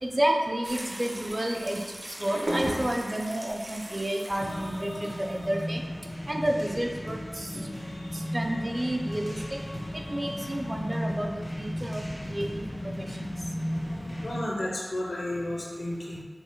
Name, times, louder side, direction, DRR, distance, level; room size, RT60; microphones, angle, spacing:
voice 1, 0.0-5.8 6.3-7.5 8.3-9.4 9.9-13.3, right 1 dB, 30° right, 2 dB, 0.5 m, -30 dB
sound 1, 0.6-5.6, right 1 dB, 75° right, 0.8 m, -37 dB
sound 2, 4.4-14.4, equal, 45° left, 1.5 m, -35 dB
voice 2, 14.2-16.2, left 1 dB, 80° left, -3 dB, 0.9 m, -32 dB
5.7 x 3.6 x 2.2 m, 1.4 s
wide cardioid pair, 45°, 0 cm